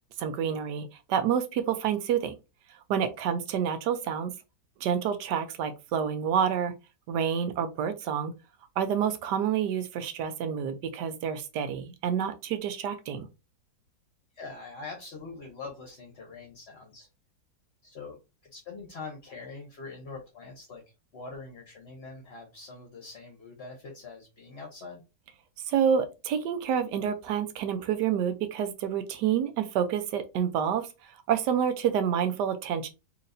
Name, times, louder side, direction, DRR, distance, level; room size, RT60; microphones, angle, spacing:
voice 1, 0.2-2.3 2.9-4.3 4.8-6.7 7.1-8.3 8.8-13.3 25.7-30.9 31.3-32.9, right 8 dB, 75° right, 1.2 m, -28 dB
voice 2, 14.3-17.1 17.8-18.2 18.5-25.0, left 4 dB, 45° left, 0.9 m, -43 dB
4.4 x 2.8 x 2.6 m
omnidirectional pair, 1.9 m